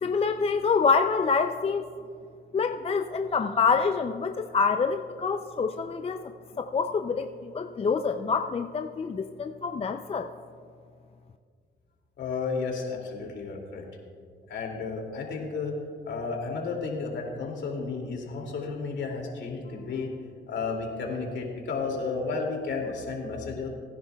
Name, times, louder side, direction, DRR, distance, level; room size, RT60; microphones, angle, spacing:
voice 1, 0.0-1.8 2.5-6.2 6.6-10.3, left 5 dB, 30° left, 7 dB, 0.5 m, -26 dB
voice 2, 12.2-13.8 14.5-20.1 20.5-23.7, left 4 dB, 65° left, 0 dB, 2.5 m, -32 dB
19.5 x 10.0 x 2.3 m, 2.1 s
cardioid pair, 90°, 20 cm